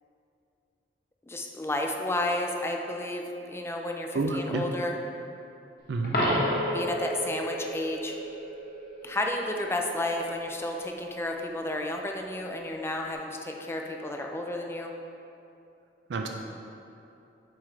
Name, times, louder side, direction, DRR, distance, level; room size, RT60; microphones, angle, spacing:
voice 1, 1.3-5.0 6.7-8.1 9.0-14.9, left 1 dB, 15° left, 2 dB, 0.4 m, -32 dB
voice 2, 4.1-4.7 5.9-6.2 16.1-16.3, right 3 dB, 75° right, 3 dB, 0.4 m, -29 dB
Coin (dropping), 6.0-6.9 13.0-13.1, equal, 60° left, 1.1 m, -27 dB
sound 1, 6.2-11.6, equal, 50° right, 1.0 m, -37 dB
7.4 x 4.7 x 3.2 m, 2.7 s
head